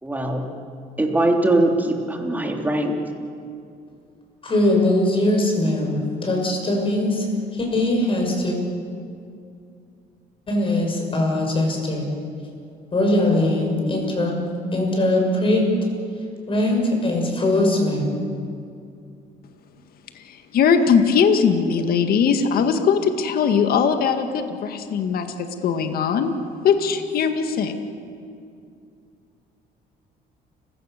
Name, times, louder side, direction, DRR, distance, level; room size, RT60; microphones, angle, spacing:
voice 1, 0.0-0.5 1.0-3.0, right 1 dB, 10° right, 2 dB, 3.1 m, -21 dB
voice 2, 4.4-7.3 7.5-8.6 10.5-12.1 12.9-14.4 14.7-15.7 16.5-18.1, left 1 dB, 30° left, 1 dB, 6.6 m, -21 dB
voice 3, 20.2-26.3 26.6-27.7, left 6 dB, 60° left, 7 dB, 1.9 m, -20 dB
29.5 x 17.0 x 6.9 m, 2.5 s
cardioid pair, 110°, 17 cm